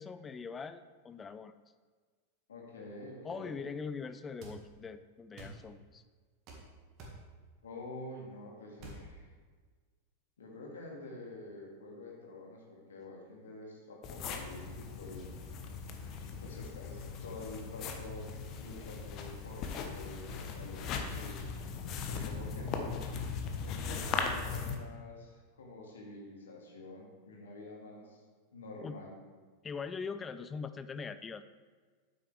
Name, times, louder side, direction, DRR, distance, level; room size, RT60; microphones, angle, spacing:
voice 1, 0.0-1.5 3.2-6.0 28.8-29.0 29.6-31.4, left 5 dB, 20° left, 12 dB, 0.4 m, -42 dB
voice 2, 2.5-3.6 7.6-9.3 10.4-15.3 16.2-21.5 22.1-23.0 23.6-28.2 28.5-29.2, left 2 dB, 65° left, -1 dB, 2.0 m, -48 dB
sound 1, 4.4-4.6 5.4-5.6 6.5-6.6 7.0-7.2 8.8-9.0, right 2 dB, 40° right, 1.8 m, -47 dB
sound 2, 14.0-24.8, left 5 dB, 35° left, 1.0 m, -39 dB
9.2 x 7.9 x 3.4 m, 1.5 s
figure-of-eight pair, 90°, 0 cm